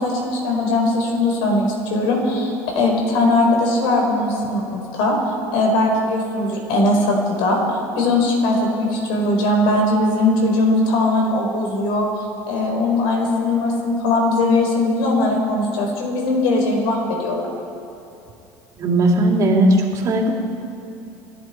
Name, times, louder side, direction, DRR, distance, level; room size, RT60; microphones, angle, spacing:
voice 1, 0.0-5.2 5.5-12.1 12.5-17.5, left 2 dB, 75° left, 0 dB, 5.0 m, -19 dB
voice 2, 18.8-20.3, right 1 dB, 45° right, 1 dB, 3.0 m, -17 dB
28.5 x 11.0 x 4.7 m, 2.7 s
supercardioid pair, 105°, 8 cm